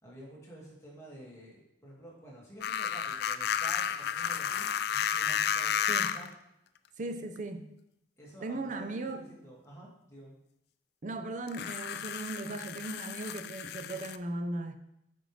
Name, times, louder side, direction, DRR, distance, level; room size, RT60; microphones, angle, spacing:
voice 1, 0.0-6.3 8.2-10.3, right 1 dB, 15° left, 2.0 m, -50 dB
sound 1, 2.6-6.3 7.4-7.5 11.5-14.2, left 8 dB, 60° left, 0.3 m, -32 dB
voice 2, 7.0-7.7 8.4-9.2 11.0-14.8, right 2 dB, 45° right, 0.6 m, -37 dB
8.0 x 5.2 x 3.3 m
head